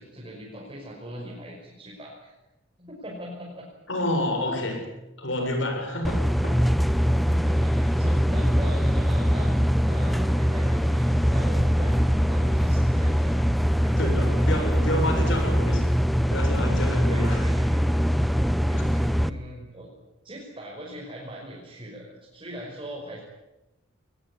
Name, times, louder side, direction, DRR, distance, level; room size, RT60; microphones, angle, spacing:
voice 1, 0.0-2.3 2.8-3.7 7.1-14.5 14.8-14.9 15.8-16.0 17.1-18.2 18.7-19.9 20.2-23.2, equal, 25° right, -4 dB, 5.8 m, -41 dB
voice 2, 3.9-4.9 5.2-6.6 14.0-15.9 16.3-17.4 18.3-18.4, left 1 dB, 65° left, 4 dB, 7.1 m, -28 dB
sound 1, 6.0-19.3, equal, ahead, 0.8 m, -22 dB
21.5 x 20.5 x 10.0 m, 0.98 s
head